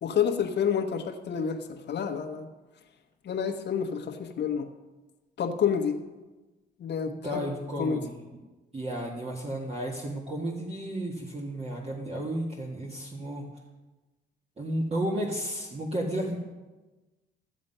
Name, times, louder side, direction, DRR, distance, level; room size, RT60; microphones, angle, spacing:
voice 1, 0.0-2.5 3.2-4.7 5.4-6.0 6.8-7.4 7.8-8.0, left 7 dB, 60° left, 3 dB, 1.1 m, -29 dB
voice 2, 7.2-8.2 8.7-13.5 14.6-16.4, right 1 dB, 30° right, -2 dB, 1.8 m, -32 dB
14.5 x 7.5 x 5.5 m, 1.2 s
cardioid pair, 90°, 20 cm